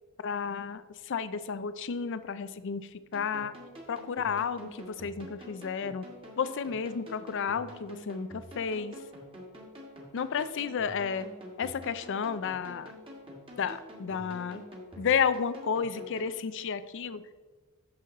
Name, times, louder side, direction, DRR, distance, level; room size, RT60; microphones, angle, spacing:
voice 1, 0.2-3.5 3.9-6.1 6.4-8.9 10.1-11.3 11.6-12.9 13.6-14.6 15.0-17.2, left 6 dB, 55° left, 14 dB, 0.4 m, -32 dB
sound 1, 3.1-16.4, equal, 25° right, 1.7 m, -47 dB
9.0 x 6.8 x 3.9 m, 1.4 s
head